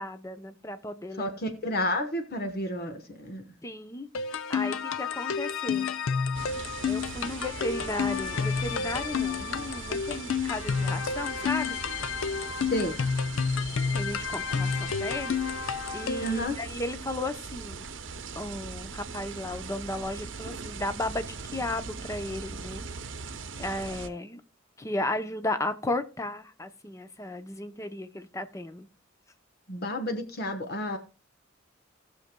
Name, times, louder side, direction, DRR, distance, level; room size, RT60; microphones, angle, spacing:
voice 1, 0.0-1.4 3.6-5.9 6.9-11.8 13.9-15.4 15.7-17.9 18.4-22.8 23.6-24.4 24.8-28.9, left 1 dB, 15° left, 9 dB, 0.6 m, -35 dB
voice 2, 1.2-3.4 12.7-13.0 16.2-16.5 29.7-31.0, left 1 dB, 50° left, 7 dB, 1.0 m, -31 dB
sound 1, 4.1-16.4, left 6 dB, 90° left, 0.6 m, -30 dB
sound 2, 6.3-24.1, right 4 dB, 65° right, 0.8 m, -40 dB
18.5 x 6.5 x 2.2 m, 0.34 s
head